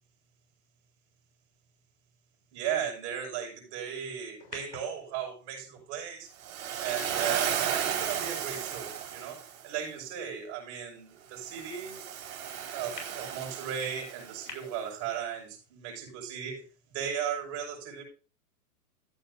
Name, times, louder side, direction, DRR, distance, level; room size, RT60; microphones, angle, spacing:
voice 1, 2.5-6.3 6.8-12.0 12.7-18.0, right 8 dB, 35° right, -1 dB, 6.0 m, -36 dB
sound 1, 4.4-8.8 9.5-9.6 13.0-13.1 14.5-14.6, left 4 dB, 90° left, 3.8 m, -50 dB
Waves surf, 6.4-9.6 11.4-14.5, right 8 dB, 60° right, 4.2 m, -34 dB
14.5 x 8.9 x 2.7 m, 0.36 s
hypercardioid pair, 140°, 47 cm